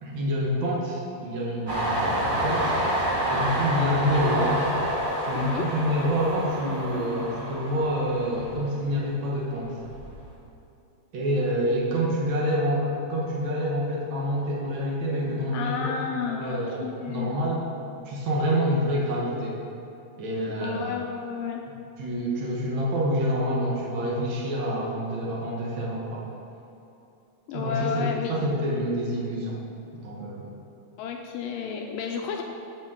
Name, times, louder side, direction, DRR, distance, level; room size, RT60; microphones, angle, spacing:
voice 1, 0.0-2.7 3.3-4.7 5.3-9.8 11.1-16.0 16.3-17.6 18.0-19.6 20.2-20.9 22.0-26.2 27.5-29.6 29.9-30.5, equal, 75° right, -4 dB, 1.1 m, -27 dB
Train, 1.7-9.1 9.5-10.3, right 1 dB, 35° right, 0.7 m, -28 dB
voice 2, 5.3-5.7 15.5-17.4 20.6-21.6 27.5-28.3 31.0-32.4, left 6 dB, 80° left, 2 dB, 2.1 m, -32 dB
15.0 x 5.2 x 3.8 m, 2.8 s
omnidirectional pair, 4.2 m